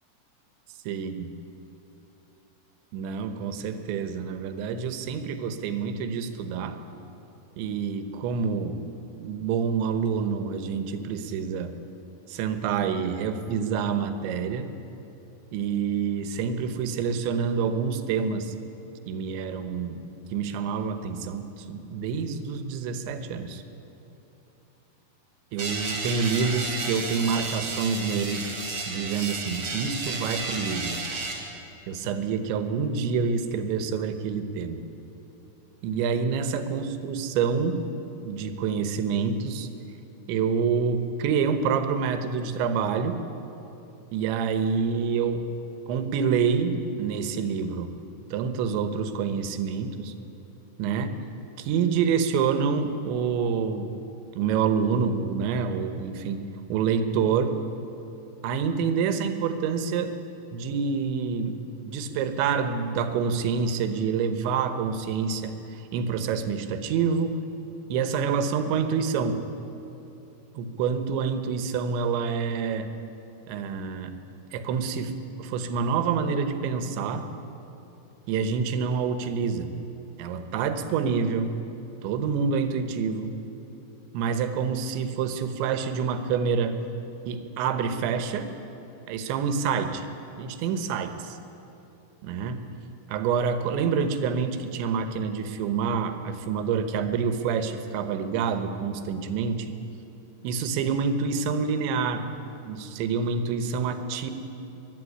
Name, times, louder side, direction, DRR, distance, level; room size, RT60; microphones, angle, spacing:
voice 1, 0.9-1.3 2.9-6.8 7.6-8.8 9.2-11.7 12.3-14.7 15.5-18.5 19.1-23.6 25.5-28.5 28.9-31.0 31.9-34.8 35.8-37.8 38.2-39.7 40.3-43.2 44.1-45.4 45.9-47.9 48.3-50.1 50.8-51.1 51.6-53.9 54.4-56.4 56.7-57.6 58.4-60.1 60.5-61.6 61.8-65.5 65.9-67.4 67.9-69.4 70.5-72.9 73.5-74.2 74.5-77.2 78.3-79.7 80.2-81.6 82.0-83.4 84.1-86.8 87.3-88.5 89.1-90.1 90.3-91.4 92.2-92.6 93.1-99.7 100.4-102.3 102.7-104.3, right 6 dB, 90° right, 9 dB, 3.4 m, -27 dB
sound 1, 25.6-31.3, right 3 dB, 40° right, 3.3 m, -32 dB
22.5 x 11.5 x 9.9 m, 3.0 s
omnidirectional pair, 5.1 m